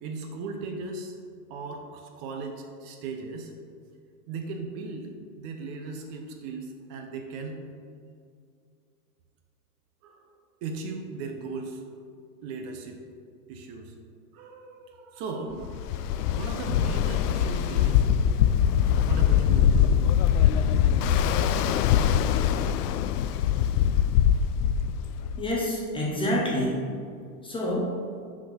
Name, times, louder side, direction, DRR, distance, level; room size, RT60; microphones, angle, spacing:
voice 1, 0.0-1.2 1.5-3.5 4.3-7.7 10.0-11.8 12.4-13.0 13.5-14.0 14.3-18.1 18.4-18.5 19.0-19.8, right 3 dB, 35° right, 3 dB, 0.7 m, -37 dB
Ocean, 15.6-25.5, left 9 dB, 80° left, 0.5 m, -23 dB
voice 2, 25.4-27.0 27.4-28.0, left 1 dB, 10° left, -3 dB, 0.6 m, -27 dB
6.0 x 4.4 x 5.8 m, 2.3 s
supercardioid pair, 145°, 46 cm